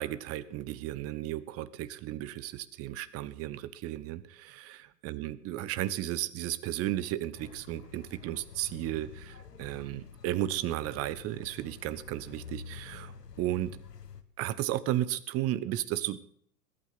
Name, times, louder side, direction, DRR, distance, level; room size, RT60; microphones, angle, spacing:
voice 1, 0.0-4.7 5.0-13.8 14.4-16.3, right 14 dB, 30° right, 17 dB, 1.1 m, -34 dB
sound 1, 7.3-14.2, left 6 dB, 80° left, 1.7 m, -48 dB
20.5 x 8.9 x 5.9 m, 0.64 s
figure-of-eight pair, 95°, 47 cm